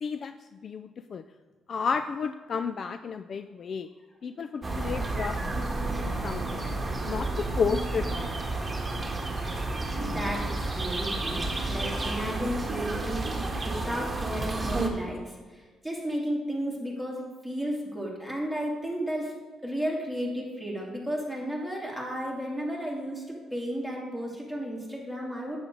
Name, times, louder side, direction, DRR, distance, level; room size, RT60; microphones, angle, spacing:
voice 1, 0.0-0.3 0.6-1.2 1.7-3.9 4.2-6.7 7.0-8.7, left 5 dB, 50° left, 10 dB, 0.3 m, -32 dB
sound 1, 4.6-14.9, right 2 dB, 20° right, 1.6 m, -31 dB
voice 2, 10.0-13.3 13.6-19.3 19.6-25.6, equal, 5° left, -3 dB, 2.7 m, -33 dB
9.1 x 7.9 x 3.9 m, 1.4 s
cardioid pair, 90°, 0 cm